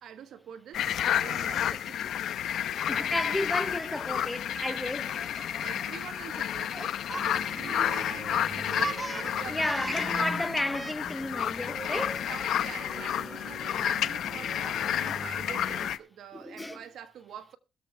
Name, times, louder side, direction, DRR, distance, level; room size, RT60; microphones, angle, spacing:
voice 1, 0.0-2.2 5.6-10.3 11.9-17.6, right 9 dB, 70° right, 1.4 m, -45 dB
sound 1, 0.7-16.0, left 10 dB, 70° left, 0.8 m, -31 dB
voice 2, 2.9-5.2 9.5-12.2 16.3-16.8, left 1 dB, 10° left, 0.7 m, -32 dB
Laughter, 3.9-8.0 8.3-10.2 10.7-10.9, right 3 dB, 15° right, 0.8 m, -41 dB
sound 2, 7.1-15.9, right 1 dB, 40° right, 3.9 m, -44 dB
21.0 x 7.1 x 3.3 m
cardioid pair, 90°, 0 cm